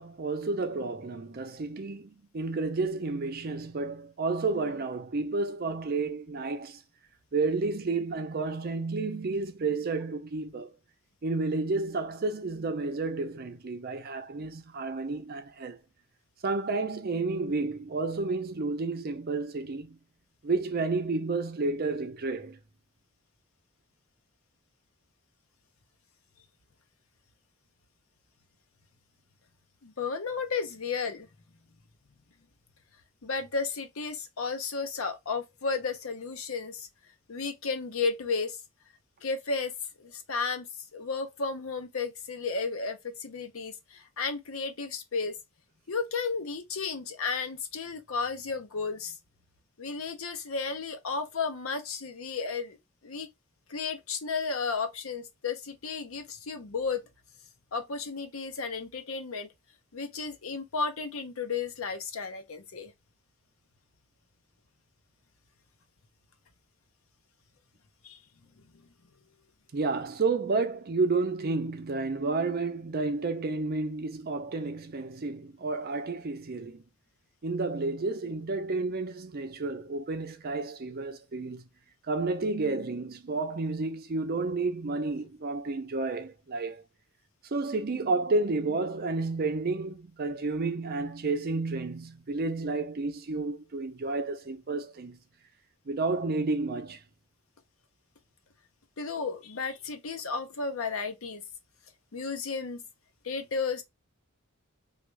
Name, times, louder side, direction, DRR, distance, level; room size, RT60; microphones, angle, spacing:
voice 1, 0.0-6.8 7.3-10.7 11.2-15.8 16.4-20.0 20.4-22.6 69.7-76.8 77.4-81.6 82.1-86.8 87.5-95.2 95.9-97.0, right 3 dB, 45° right, 0.5 m, -31 dB
voice 2, 29.8-31.3 33.2-36.9 37.3-38.6 39.2-39.7 40.0-40.7 40.9-45.4 45.9-49.2 49.8-52.8 53.0-53.3 53.7-57.0 57.7-59.5 59.9-62.9 68.0-68.2 99.0-101.4 102.1-102.8 103.2-103.8, left 4 dB, 90° left, 0.7 m, -33 dB
3.5 x 2.4 x 3.1 m
head